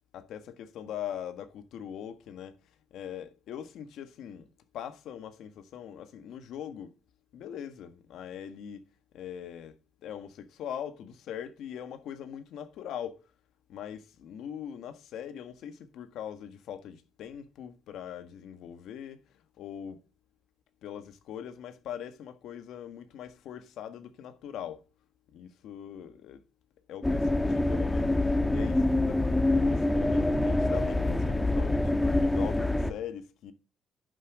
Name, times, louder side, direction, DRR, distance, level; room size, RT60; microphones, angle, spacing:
voice 1, 0.1-2.6 2.9-4.5 4.7-6.9 7.3-8.8 9.1-13.2 13.7-20.0 20.8-24.8 25.3-26.4 26.9-33.5, left 9 dB, 80° left, 1.5 m, -41 dB
sound 1, 27.0-32.9, left 2 dB, 15° left, 1.1 m, -26 dB
11.0 x 6.6 x 5.1 m
cardioid pair, 90°, 0 cm